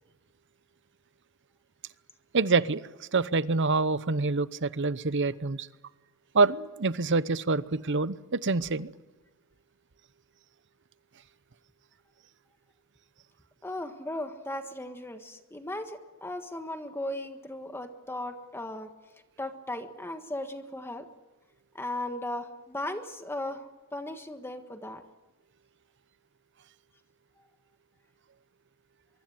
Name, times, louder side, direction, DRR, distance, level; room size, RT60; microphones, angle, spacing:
voice 1, 2.3-2.8 3.1-5.7 6.3-8.9, right 3 dB, 60° right, 16 dB, 0.9 m, -26 dB
voice 2, 13.6-18.9 19.4-21.1 21.7-23.6 23.9-25.0, left 1 dB, 10° left, 7 dB, 1.5 m, -37 dB
24.0 x 24.0 x 7.8 m, 1.2 s
head